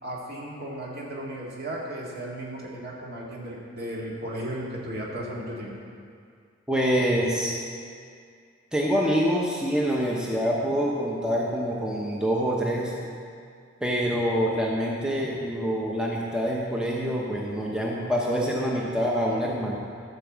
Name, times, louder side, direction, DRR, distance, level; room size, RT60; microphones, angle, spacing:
voice 1, 0.0-5.7, right 1 dB, 55° right, -4 dB, 2.1 m, -35 dB
voice 2, 6.7-7.5 8.7-12.9 13.8-19.8, equal, 5° right, -3 dB, 0.9 m, -26 dB
13.0 x 4.8 x 7.3 m, 2.2 s
head